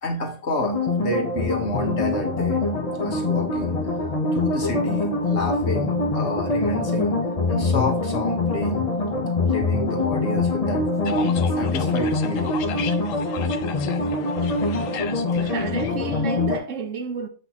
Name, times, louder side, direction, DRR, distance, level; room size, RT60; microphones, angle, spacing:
voice 1, 0.0-2.7 3.0-3.8 4.3-7.2 7.5-8.9 9.5-12.5 14.1-14.2, left 1 dB, 55° left, 1.9 m, -29 dB
sound 1, 0.6-16.6, left 3 dB, 30° left, 1.0 m, -24 dB
sound 2, 11.1-15.9, left 8 dB, 80° left, 1.1 m, -36 dB
voice 2, 15.4-17.3, right 3 dB, 70° right, 1.2 m, -30 dB
8.1 x 6.1 x 3.0 m
omnidirectional pair, 1.4 m